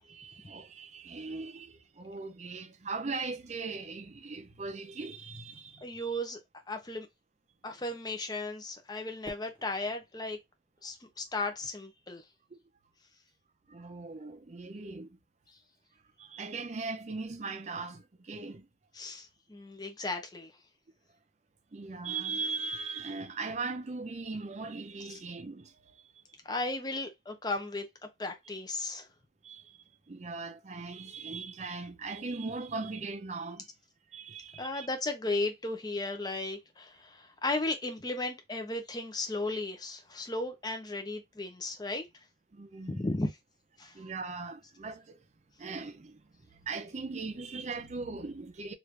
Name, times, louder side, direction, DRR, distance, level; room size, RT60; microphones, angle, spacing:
voice 1, 0.0-6.2 12.5-12.6 13.7-15.2 16.2-18.7 21.7-26.0 29.4-29.8 30.1-33.7 34.1-34.9 42.5-43.1 43.8-45.2 45.6-46.2 46.5-48.7, right 4 dB, 40° right, 0.5 m, -39 dB
voice 2, 5.8-6.4 6.7-7.1 7.6-10.4 10.8-12.2 18.9-20.5 26.4-29.1 34.6-42.1 42.9-43.3 43.8-43.9, left 2 dB, 25° left, 0.6 m, -35 dB
Fireworks, 9.2-11.6, left 1 dB, 10° right, 0.9 m, -52 dB
3.1 x 2.5 x 3.2 m
head